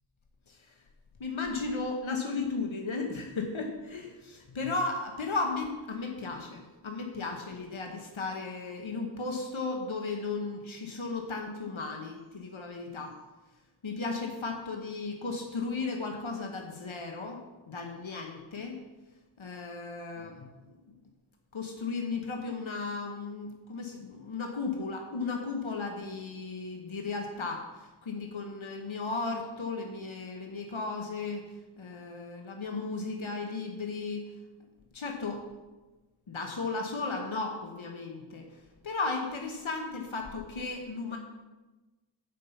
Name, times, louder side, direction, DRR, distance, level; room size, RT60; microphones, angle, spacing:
voice 1, 1.2-13.1 13.8-18.8 19.4-20.5 21.5-31.5 31.8-34.3 34.9-35.4 36.3-41.2, left 3 dB, 85° left, 2 dB, 1.1 m, -35 dB
9.0 x 5.6 x 6.9 m, 1.2 s
wide cardioid pair, 55°, 46 cm